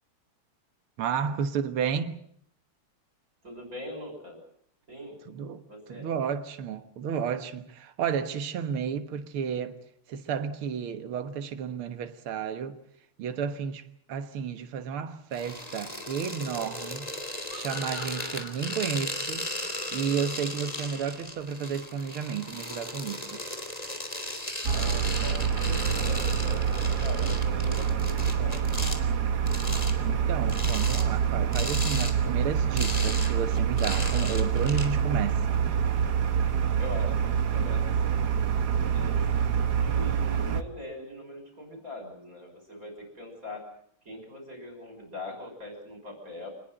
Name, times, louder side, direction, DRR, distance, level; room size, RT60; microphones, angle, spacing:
voice 1, 1.0-2.2 5.3-5.6 5.9-9.8 10.1-12.8 13.2-13.8 14.1-17.1 17.5-19.5 19.9-23.4 30.0-35.6, right 7 dB, 80° right, 2.2 m, -32 dB
voice 2, 3.4-4.4 4.9-5.3 5.7-6.1 24.7-28.5 36.8-38.3 38.6-39.3 39.7-43.6 44.0-46.5, left 1 dB, 40° right, 6.6 m, -41 dB
sound 1, 15.3-29.0 29.5-30.0 30.5-31.1 31.5-32.1 32.4-34.9, left 1 dB, 15° left, 3.1 m, -36 dB
sound 2, 17.5-20.9, left 3 dB, 65° left, 7.3 m, -45 dB
sound 3, 24.6-40.6, right 7 dB, 55° right, 1.6 m, -26 dB
25.5 x 20.5 x 7.9 m
omnidirectional pair, 2.4 m